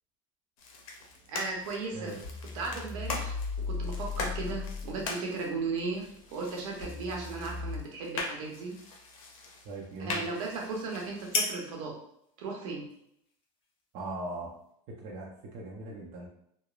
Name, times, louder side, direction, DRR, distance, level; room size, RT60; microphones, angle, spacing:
sound 1, 0.6-11.3, left 3 dB, 85° left, 0.6 m, -42 dB
sound 2, 1.0-1.7 2.2-5.1 5.5-7.8, left 4 dB, 55° left, 1.3 m, -37 dB
voice 1, 1.3-2.1 2.5-3.4 3.6-8.7 10.0-11.9 12.4-12.9, right 3 dB, 75° right, 0 dB, 0.8 m, -36 dB
sound 3, 7.0-14.7, left 3 dB, 30° left, 0.6 m, -41 dB
voice 2, 9.6-10.3 13.9-14.5 14.9-16.3, right 2 dB, 50° right, -3 dB, 0.6 m, -39 dB
3.0 x 2.0 x 2.3 m, 0.74 s
supercardioid pair, 120°, 17 cm